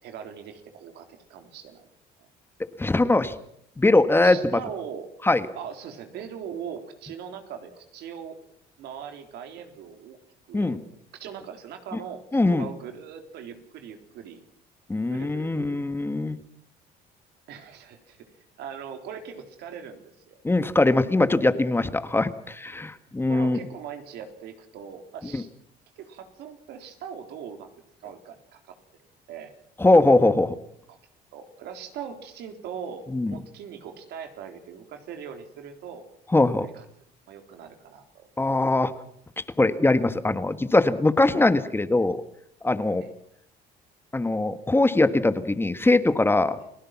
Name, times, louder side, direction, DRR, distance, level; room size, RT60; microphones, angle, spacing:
voice 1, 0.0-1.9 4.2-5.1 5.5-8.4 8.8-10.2 10.5-14.4 15.1-16.1 17.5-18.2 18.6-20.4 23.3-25.5 26.0-27.7 28.0-28.7 29.3-29.5 30.9-31.0 31.3-36.0 36.6-36.8 37.3-38.2 43.0-43.1, right 7 dB, 80° right, 6 dB, 3.8 m, -40 dB
voice 2, 2.8-3.3 3.8-4.6 5.2-5.5 10.5-10.8 12.3-12.7 14.9-16.4 20.4-23.6 25.3-25.4 29.8-30.6 33.1-33.3 36.3-36.7 38.4-38.9 39.6-42.2 42.6-43.0 44.1-46.6, left 2 dB, 15° left, 11 dB, 1.5 m, -21 dB
30.0 x 17.5 x 6.0 m, 0.68 s
cardioid pair, 110°, 17 cm